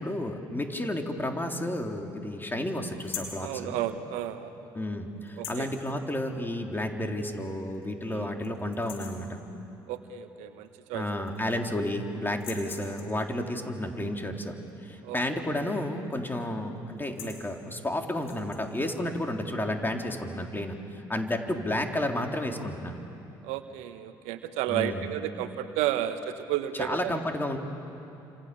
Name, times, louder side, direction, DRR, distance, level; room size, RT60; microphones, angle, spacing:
voice 1, 0.0-3.8 4.7-9.4 10.9-20.8 21.1-23.0 24.7-25.1 26.7-27.6, left 1 dB, 15° left, 3 dB, 3.8 m, -32 dB
sound 1, 3.0-3.4 5.3-5.8 7.2-7.3 7.7-7.8 8.2-8.5 8.7-9.3 10.6-10.7 11.0-11.7 12.3-13.2 15.6-15.9 16.2-16.4 16.9-17.5 18.1-18.6, left 7 dB, 85° left, 2.8 m, -42 dB
voice 2, 3.4-4.5 5.4-5.7 8.1-8.3 9.9-11.0 15.0-15.2 17.2-17.3 23.4-27.2, right 12 dB, 70° right, 10 dB, 1.1 m, -32 dB
29.5 x 27.0 x 7.1 m, 2.9 s
hypercardioid pair, 50°, 12 cm